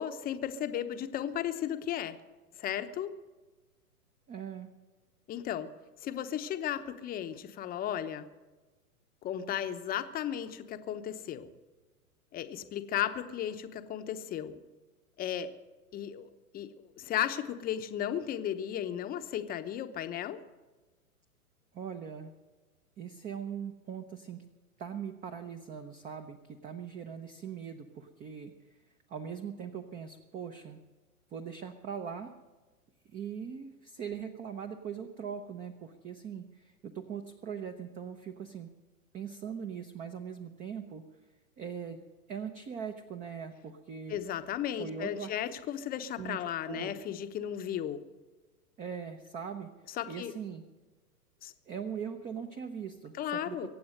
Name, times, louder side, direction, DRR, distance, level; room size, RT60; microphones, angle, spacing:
voice 1, 0.0-2.2 2.6-3.1 5.3-5.7 6.0-8.3 9.2-11.5 12.3-14.5 15.2-15.5 15.9-16.3 16.5-20.4 44.1-48.0 50.0-50.3 51.4-51.5 53.2-53.7, left 10 dB, 20° left, 9 dB, 0.9 m, -35 dB
voice 2, 4.3-4.7 21.7-22.3 23.0-24.4 24.8-28.5 29.1-30.8 31.3-32.3 33.0-38.7 39.1-41.0 41.6-42.0 42.3-44.2 44.8-45.3 46.2-46.9 48.8-49.7 50.1-50.6 51.7-53.7, right 7 dB, 15° right, 6 dB, 0.8 m, -41 dB
23.5 x 8.7 x 6.6 m, 1.2 s
hypercardioid pair, 120°, 45 cm